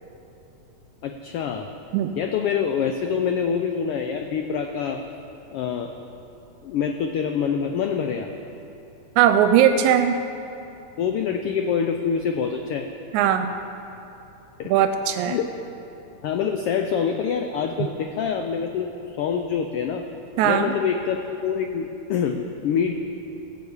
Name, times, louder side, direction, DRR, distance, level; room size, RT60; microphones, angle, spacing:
voice 1, 1.0-1.7 2.2-5.0 5.5-5.9 6.6-8.3 11.0-12.9 14.6-14.7 15.2-15.5 16.2-18.9 19.2-20.1 20.4-22.9, left 7 dB, 90° left, 5 dB, 1.2 m, -25 dB
voice 2, 9.2-10.2 13.1-13.5 14.7-15.4 20.4-20.7, right 9 dB, 85° right, 8 dB, 2.0 m, -19 dB
15.5 x 7.3 x 8.0 m, 2.9 s
omnidirectional pair, 3.3 m